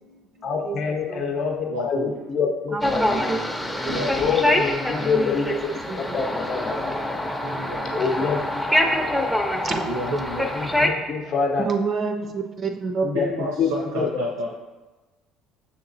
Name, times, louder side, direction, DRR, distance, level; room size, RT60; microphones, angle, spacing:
voice 1, 0.4-2.8 4.2-5.5 6.1-6.8 7.9-8.6 10.6-11.7 13.0-13.3 13.6-14.1, left 5 dB, 50° left, 2 dB, 0.6 m, -25 dB
voice 2, 1.7-2.1 3.9-4.1 7.4-7.8 9.9-10.5 13.1-14.5, equal, 90° right, -2 dB, 0.6 m, -29 dB
voice 3, 2.7-4.2 5.0-5.6 5.9-6.4 9.5-9.9 11.6-13.1 14.0-14.1, right 4 dB, 40° right, 4 dB, 0.4 m, -29 dB
sound 1, 2.8-10.9, left 1 dB, 5° left, 0.5 m, -25 dB
6.5 x 2.9 x 2.6 m, 1.2 s
supercardioid pair, 90°, 0 cm